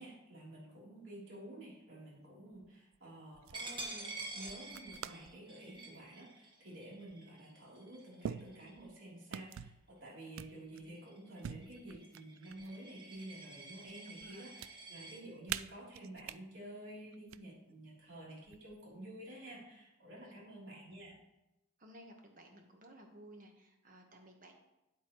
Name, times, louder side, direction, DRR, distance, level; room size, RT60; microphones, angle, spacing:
voice 1, 0.0-21.2, right 1 dB, 65° right, -5 dB, 3.4 m, -51 dB
sound 1, 2.5-3.0 3.3-3.6 4.5-5.3 5.7-6.1 7.1-7.2 8.2-9.0 9.3-9.8 10.4-10.9 11.4-12.8 13.2-13.9 14.2-14.7 15.5-16.4 17.1-17.4 18.4-19.0, right 9 dB, 85° right, 0.3 m, -45 dB
Coin (dropping), 3.5-8.9 9.4-9.7 10.1-15.2, right 2 dB, 25° right, 1.3 m, -49 dB
voice 2, 14.2-14.7 20.2-20.4 21.8-24.5, right 1 dB, 40° right, 3 dB, 1.2 m, -57 dB
9.5 x 8.1 x 3.1 m, 0.93 s
head